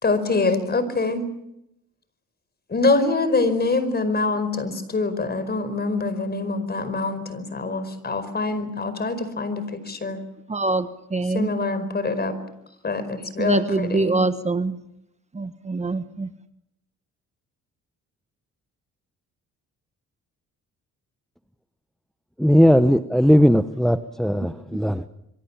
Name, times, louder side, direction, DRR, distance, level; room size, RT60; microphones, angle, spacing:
voice 1, 0.0-1.3 2.7-10.2 11.2-12.4 12.8-14.2, left 3 dB, 35° left, 13 dB, 5.0 m, -24 dB
voice 2, 10.5-11.5 13.4-14.8 15.3-16.3, right 3 dB, 20° right, 10 dB, 1.3 m, -24 dB
voice 3, 22.4-25.1, equal, ahead, 11 dB, 1.0 m, -18 dB
27.0 x 23.0 x 7.4 m, 0.82 s
cardioid pair, 90°, 30 cm